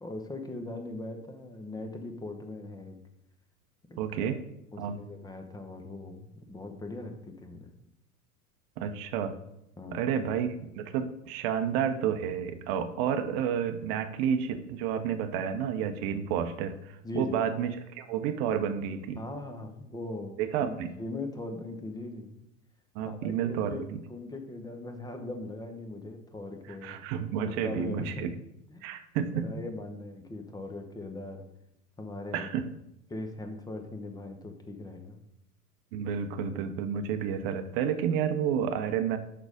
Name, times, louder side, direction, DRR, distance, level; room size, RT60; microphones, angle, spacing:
voice 1, 0.0-3.0 3.9-4.3 4.7-7.7 9.8-10.1 17.0-17.4 19.2-22.5 23.0-23.8 24.1-27.0 27.4-28.3 28.7-28.9 29.2-31.5 32.0-32.5 33.1-35.2, left 2 dB, 10° left, 6 dB, 0.9 m, -40 dB
voice 2, 4.0-4.4 4.8-5.0 8.8-9.3 9.9-19.2 20.4-20.9 22.9-24.0 26.8-28.3 28.8-29.7 32.3-32.7 35.9-39.2, right 8 dB, 40° right, 8 dB, 0.8 m, -30 dB
6.1 x 5.6 x 5.1 m, 0.82 s
figure-of-eight pair, 90°, 46 cm